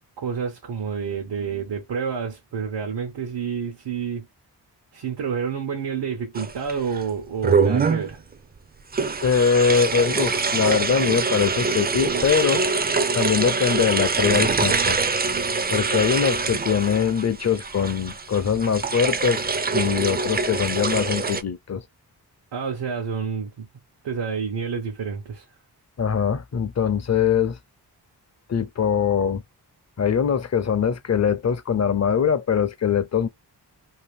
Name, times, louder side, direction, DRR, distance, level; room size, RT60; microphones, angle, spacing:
voice 1, 0.2-4.3 4.9-8.2 22.5-23.7 24.0-25.4, right 6 dB, 85° right, 1.0 m, -29 dB
sound 1, 6.3-7.0 7.4-8.1 8.9-21.4, right 4 dB, 25° right, 0.4 m, -24 dB
voice 2, 9.2-12.7 13.1-15.0 15.7-19.4 19.7-21.8 26.0-27.6 28.5-29.4 30.0-33.3, left 7 dB, 40° left, 0.6 m, -22 dB
2.8 x 2.5 x 3.4 m
cardioid pair, 50°, 41 cm